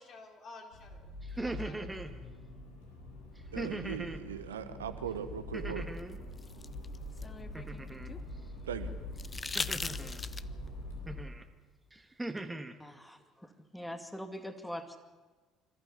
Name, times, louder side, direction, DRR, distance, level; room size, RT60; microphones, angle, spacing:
voice 1, 0.0-1.9 9.6-10.2, left 3 dB, 45° left, 3 dB, 3.4 m, -53 dB
Accelerating revving vroom, 0.7-11.2, left 1 dB, 75° left, 3.9 m, -44 dB
sound 1, 1.2-2.1 3.6-4.2 5.5-6.2 7.5-8.1 9.6-10.2 11.1-11.4 11.9-12.7, right 2 dB, 10° right, 1.6 m, -40 dB
voice 2, 3.5-5.9 8.7-8.9, right 8 dB, 80° right, 10 dB, 1.0 m, -39 dB
sound 2, 6.0-8.3 9.2-10.7 12.4-12.5, left 4 dB, 25° left, 0.6 m, -40 dB
voice 3, 12.8-15.0, equal, 5° left, 7 dB, 2.2 m, -43 dB
26.5 x 14.0 x 7.3 m, 1.3 s
figure-of-eight pair, 55°, 0 cm